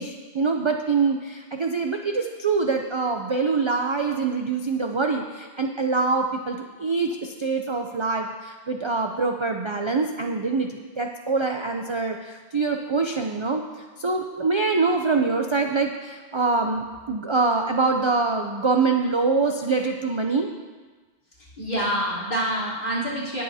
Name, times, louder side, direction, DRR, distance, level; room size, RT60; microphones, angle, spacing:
voice 1, 0.0-13.6 14.0-20.5, right 4 dB, 40° right, 3 dB, 0.4 m, -24 dB
voice 2, 21.4-23.4, equal, 50° left, -7 dB, 3.8 m, -27 dB
19.0 x 7.5 x 2.8 m, 1.4 s
omnidirectional pair, 1.1 m